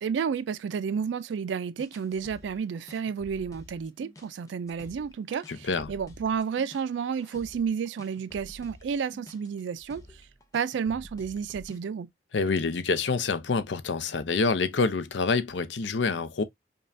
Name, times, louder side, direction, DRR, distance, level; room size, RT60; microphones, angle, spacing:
voice 1, 0.0-10.2 10.5-12.1, right 6 dB, 85° right, 0.3 m, -31 dB
sound 1, 1.8-11.9, left 1 dB, 20° left, 0.5 m, -50 dB
voice 2, 5.5-5.9 12.3-16.4, left 4 dB, 85° left, 0.6 m, -27 dB
5.3 x 2.3 x 2.5 m
head